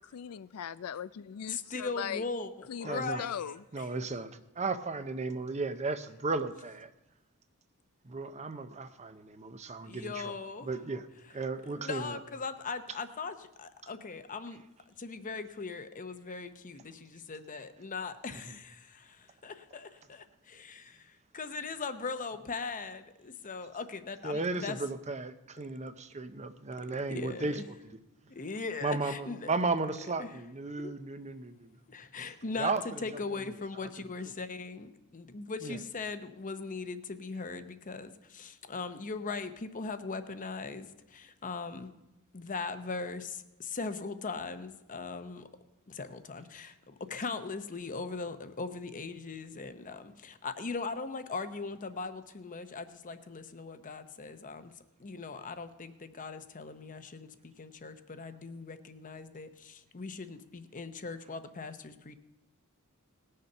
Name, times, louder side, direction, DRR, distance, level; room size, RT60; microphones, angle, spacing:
voice 1, 0.1-2.2 2.7-3.6, left 8 dB, 80° left, 16 dB, 0.4 m, -39 dB
voice 2, 1.5-3.9 9.8-10.7 11.8-14.6 15.0-24.8 27.1-27.6 28.2-29.5 30.2-30.3 30.8-30.9 31.9-41.9 42.3-45.5 45.9-54.7 55.0-62.2, left 4 dB, 40° left, 10 dB, 0.8 m, -40 dB
voice 3, 2.8-3.2 3.7-6.9 8.0-10.3 10.6-12.2 18.3-18.6 24.2-27.6 28.8-31.8 32.6-33.5 33.8-33.9 35.6-35.8, right 3 dB, 30° right, 10 dB, 0.7 m, -35 dB
19.0 x 6.7 x 5.5 m, 0.93 s
head